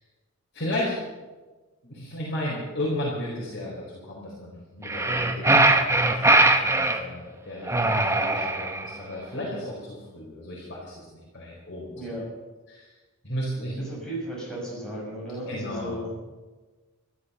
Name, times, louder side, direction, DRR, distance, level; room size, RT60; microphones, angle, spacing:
voice 1, 0.5-1.0 1.8-12.0 12.7-12.9 13.2-14.1 15.5-16.0, left 1 dB, 55° left, -5 dB, 4.3 m, -34 dB
sound 1, 4.8-7.0 7.7-8.9, right 2 dB, 15° right, 1.0 m, -21 dB
voice 2, 13.8-16.2, right 1 dB, 5° left, -5 dB, 6.1 m, -35 dB
13.0 x 13.0 x 6.8 m, 1.3 s
head